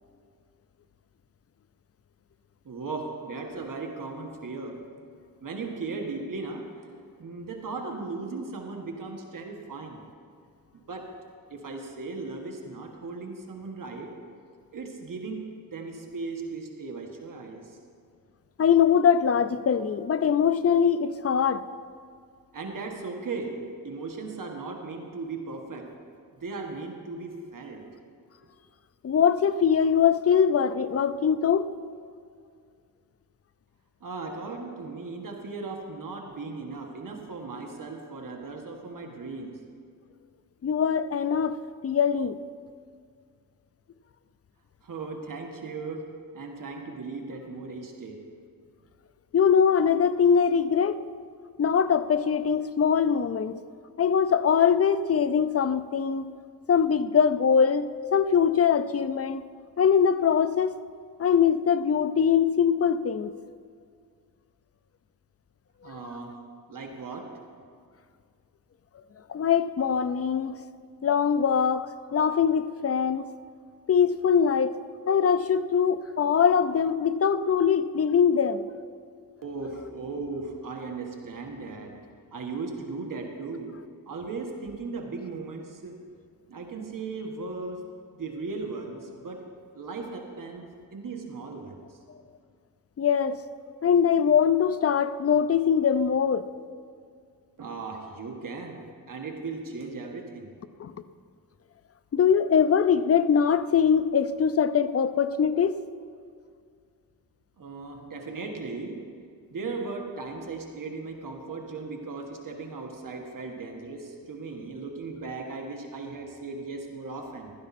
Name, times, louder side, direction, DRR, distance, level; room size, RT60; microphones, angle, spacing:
voice 1, 2.6-4.8 5.4-6.9 7.2-10.0 10.7-11.1 11.5-14.1 14.7-17.8 22.5-25.9 26.3-27.8 34.0-39.6 44.8-48.2 65.8-66.4 66.7-67.3 79.4-82.0 82.3-83.8 84.1-85.9 86.5-87.9 88.2-89.5 89.7-92.0 97.6-100.5 107.6-109.1 109.5-117.5, right 3 dB, 55° right, 1.6 m, -37 dB
voice 2, 18.6-21.6 29.0-31.7 40.6-41.6 41.8-42.4 49.3-51.0 51.6-53.6 54.0-56.3 56.7-59.4 59.8-60.7 61.2-63.3 69.3-70.6 71.0-73.3 73.9-74.8 75.1-78.7 93.0-93.4 93.8-96.5 100.8-100.9 102.1-105.8, left 7 dB, 40° left, 0.5 m, -22 dB
15.0 x 13.0 x 4.2 m
wide cardioid pair, 105°, 38 cm